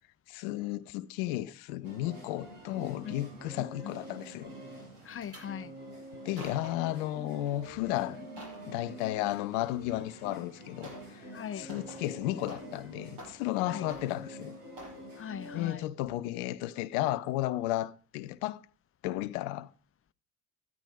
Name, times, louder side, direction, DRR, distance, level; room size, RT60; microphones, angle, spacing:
voice 1, 0.3-4.5 6.2-8.3 8.7-11.2 11.6-14.6 15.5-18.6 19.0-19.7, left 15 dB, 70° left, 0.9 m, -33 dB
sound 1, 1.8-15.8, equal, 80° right, 4.8 m, -47 dB
voice 2, 3.6-3.9 5.0-5.7 11.3-11.7 13.7-13.9 15.1-15.9, left 9 dB, 30° left, 0.7 m, -40 dB
sound 2, 4.9-5.5 6.1-6.9 7.4-7.7 8.1-8.7 10.0-10.1 10.8-11.2 11.5-12.8 13.1-13.6 13.9-14.4 14.8-15.0 15.5-15.7 16.0-16.1, right 1 dB, 65° right, 7.6 m, -48 dB
13.0 x 11.0 x 4.9 m
hypercardioid pair, 60°, 44 cm